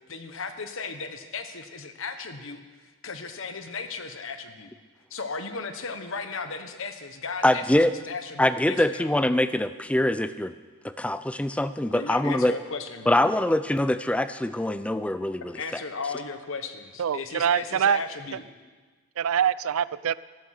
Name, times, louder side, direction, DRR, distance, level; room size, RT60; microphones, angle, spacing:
voice 1, 0.1-4.7 5.1-7.7 7.9-9.1 11.9-13.3 15.5-18.4, left 4 dB, 60° left, 8 dB, 1.1 m, -36 dB
voice 2, 7.4-7.9 8.4-10.5 10.8-12.5 13.1-15.5, left 1 dB, 5° left, 13 dB, 0.4 m, -24 dB
voice 3, 17.0-18.0 19.2-20.2, right 8 dB, 70° right, 19 dB, 0.4 m, -24 dB
14.0 x 12.0 x 6.5 m, 1.4 s
head